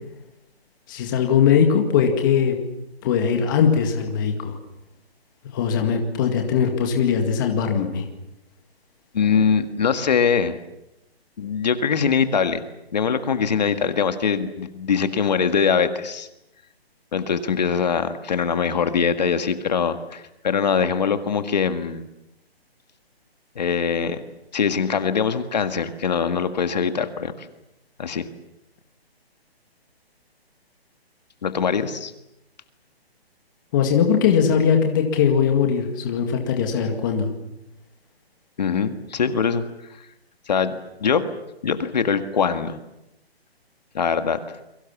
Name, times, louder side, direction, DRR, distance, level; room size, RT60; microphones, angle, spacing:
voice 1, 0.9-2.6 3.0-4.6 5.5-8.0 33.7-37.3, left 7 dB, 20° left, 3 dB, 2.0 m, -20 dB
voice 2, 9.1-10.6 11.4-12.6 12.9-16.3 17.1-22.1 23.6-24.2 24.5-27.5 28.0-28.3 31.4-32.1 38.6-39.6 40.5-41.2 41.6-42.8 43.9-44.4, left 6 dB, 40° left, 9 dB, 1.8 m, -22 dB
29.0 x 23.0 x 7.2 m, 0.89 s
hypercardioid pair, 170°, 31 cm